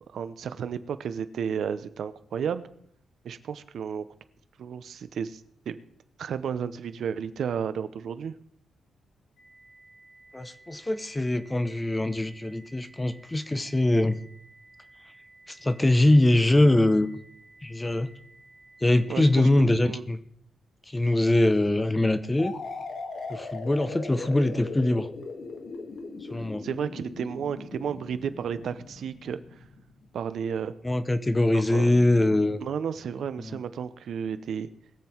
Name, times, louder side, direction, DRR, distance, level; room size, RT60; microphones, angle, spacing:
voice 1, 0.1-2.6 3.2-4.0 4.6-5.4 5.7-5.8 6.2-8.4 19.1-20.0 26.6-29.6 30.1-30.7 31.5-31.9 32.6-34.7, right 7 dB, 60° right, 12 dB, 0.8 m, -32 dB
sound 1, 9.4-19.4, right 2 dB, 80° left, 7.2 m, -55 dB
voice 2, 10.3-14.2 15.5-17.1 17.6-18.1 18.8-20.2 20.9-22.5 23.3-25.1 26.3-26.7 30.8-32.6 33.4-33.6, left 1 dB, 10° left, 11 dB, 0.7 m, -23 dB
sound 2, 22.4-30.1, left 3 dB, 50° left, 1.7 m, -39 dB
21.0 x 7.6 x 4.5 m, 0.67 s
wide cardioid pair, 165°, 0 cm